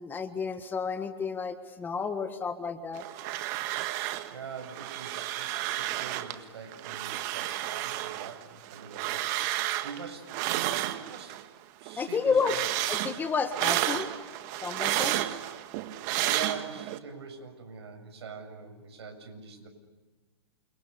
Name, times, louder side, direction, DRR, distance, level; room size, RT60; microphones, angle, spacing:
voice 1, 0.0-3.0 12.0-12.6 12.9-14.1 14.6-15.2, left 5 dB, 15° left, 9 dB, 1.6 m, -31 dB
sound 1, 2.9-4.3 4.6-6.4 6.7-11.5 11.8-17.0, right 14 dB, 40° right, 1.8 m, -32 dB
voice 2, 4.3-11.4 11.8-12.6 16.2-19.7, right 6 dB, 70° right, 6 dB, 7.5 m, -43 dB
29.5 x 27.0 x 7.0 m, 1.3 s
hypercardioid pair, 140°, 14 cm